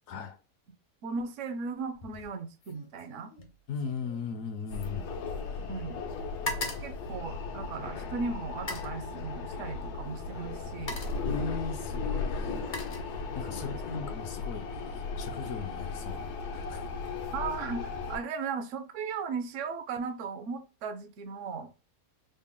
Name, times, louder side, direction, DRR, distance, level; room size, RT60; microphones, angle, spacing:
voice 1, 1.0-3.3 5.6-6.0 6.8-11.0 12.4-12.5 13.5-13.8 17.3-21.7, right 5 dB, 65° right, 0.8 m, -37 dB
sound 1, 1.9-2.3 2.6-5.7 6.0-7.9 8.5-9.0 10.0-10.2 10.6-11.3 12.2-13.6 13.9-14.3, left 2 dB, 50° left, 0.6 m, -41 dB
voice 2, 3.7-5.1 11.2-12.6 13.3-16.9, left 5 dB, 70° left, 0.9 m, -38 dB
sound 2, 4.7-18.2, left 4 dB, 85° left, 1.2 m, -36 dB
4.0 x 2.0 x 3.6 m
omnidirectional pair, 1.7 m